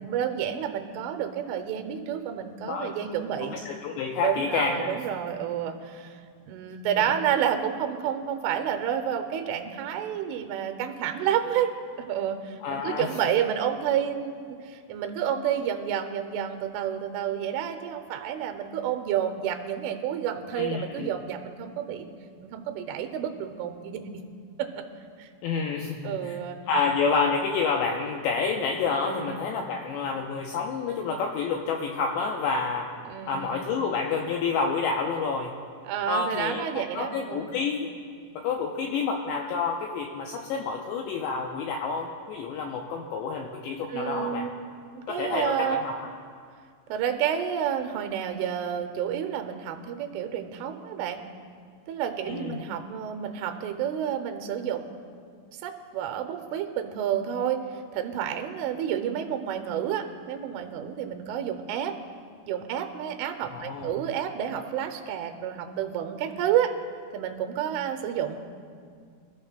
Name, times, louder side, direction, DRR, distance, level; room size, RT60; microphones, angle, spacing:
voice 1, 0.0-3.6 4.2-14.3 14.6-22.1 22.4-24.2 24.6-24.8 25.2-25.3 26.0-26.6 29.0-29.4 33.1-33.7 35.8-37.5 43.9-44.7 45.0-45.8 46.9-51.2 51.9-54.9 55.6-62.0 62.5-66.7 67.1-68.4, right 9 dB, 85° right, 7 dB, 3.1 m, -30 dB
voice 2, 3.7-4.9 12.6-13.1 20.6-21.1 25.4-26.4 26.7-32.9 33.3-35.5 36.1-37.9 38.4-44.5 45.1-46.1 52.3-52.6 63.5-63.9, left 5 dB, 85° left, 1 dB, 2.5 m, -29 dB
25.5 x 14.0 x 2.2 m, 2.1 s
omnidirectional pair, 5.8 m